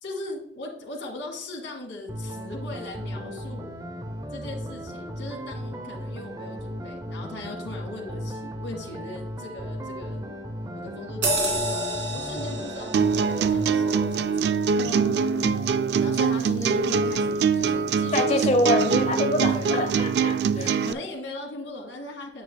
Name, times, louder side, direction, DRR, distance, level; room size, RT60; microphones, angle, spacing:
voice 1, 0.0-3.7 4.3-10.2 10.7-11.8 12.1-14.5 15.7-18.8 19.4-19.8 20.5-22.4, left 2 dB, 80° left, -2 dB, 2.0 m, -39 dB
sound 1, 2.1-14.1, equal, 20° right, 0.6 m, -36 dB
sound 2, 11.2-16.2 16.6-16.8, right 1 dB, 85° right, 2.5 m, -31 dB
sound 3, 12.9-20.9, right 5 dB, 60° right, 0.3 m, -23 dB
voice 2, 14.8-15.7 18.1-20.7, left 1 dB, 35° left, 5 dB, 0.9 m, -26 dB
9.2 x 6.8 x 2.3 m, 0.68 s
head